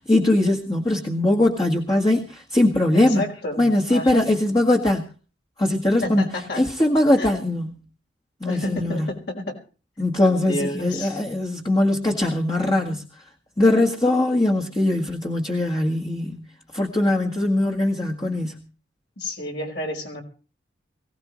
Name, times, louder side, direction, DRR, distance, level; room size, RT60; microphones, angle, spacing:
voice 1, 0.1-3.2 3.6-5.1 5.6-6.3 6.6-7.8 8.4-9.1 10.0-13.0 13.6-16.4 16.7-18.5, left 1 dB, 20° left, 1 dB, 1.7 m, -21 dB
voice 2, 2.9-4.3 6.0-6.6 7.2-7.3 8.4-9.6 10.5-11.2 19.2-20.2, left 1 dB, 60° left, 2 dB, 5.0 m, -30 dB
23.0 x 17.0 x 3.2 m, 0.37 s
head